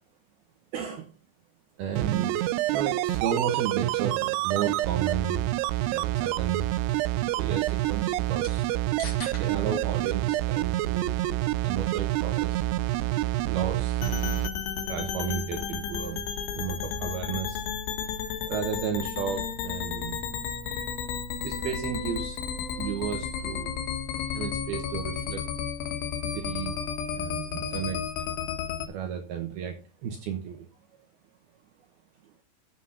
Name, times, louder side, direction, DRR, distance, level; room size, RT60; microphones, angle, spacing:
voice 1, 0.7-1.1 1.8-2.4 2.7-5.4 5.9-6.7 7.4-8.7 9.4-11.2 11.6-12.6 13.4-14.0 14.3-16.2 16.5-17.6 18.5-20.2 21.4-22.4 22.8-23.7 24.3-25.4 26.2-26.8 27.1-28.0 28.9-30.7, right 8 dB, 70° right, 4 dB, 2.7 m, -33 dB
sound 1, 1.9-14.5 14.8-14.9, right 15 dB, 85° right, 2.3 m, -27 dB
sound 2, 6.8-17.5, left 2 dB, 45° left, 4.2 m, -51 dB
sound 3, 14.0-28.9, left 7 dB, 80° left, 3.9 m, -33 dB
8.2 x 7.8 x 5.7 m, 0.32 s
omnidirectional pair, 5.3 m